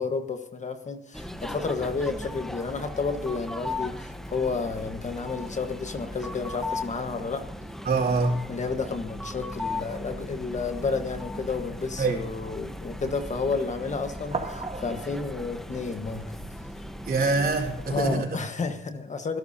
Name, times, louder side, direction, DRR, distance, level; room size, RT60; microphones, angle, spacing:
voice 1, 0.0-7.5 8.5-16.4 17.9-19.4, left 4 dB, 35° left, 7 dB, 1.4 m, -31 dB
sound 1, 1.1-18.2, left 1 dB, ahead, 1.2 m, -37 dB
voice 2, 7.8-8.4 12.0-12.2 17.0-18.4, right 3 dB, 50° right, 0 dB, 4.5 m, -24 dB
sound 2, 14.1-15.5, right 4 dB, 35° right, 2.7 m, -38 dB
26.0 x 12.0 x 2.8 m, 0.78 s
cardioid pair, 90°, 20 cm